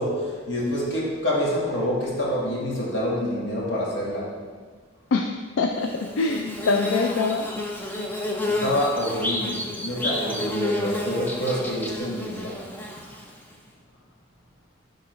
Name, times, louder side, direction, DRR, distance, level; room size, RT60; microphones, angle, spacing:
voice 1, 0.0-4.3 8.4-12.6, equal, 60° left, -5 dB, 1.6 m, -27 dB
voice 2, 5.1-7.5, left 4 dB, 80° left, 4 dB, 0.4 m, -24 dB
Bird / Buzz, 5.8-13.5, left 1 dB, 10° left, 0.5 m, -30 dB
10.5 x 3.8 x 3.1 m, 1.5 s
head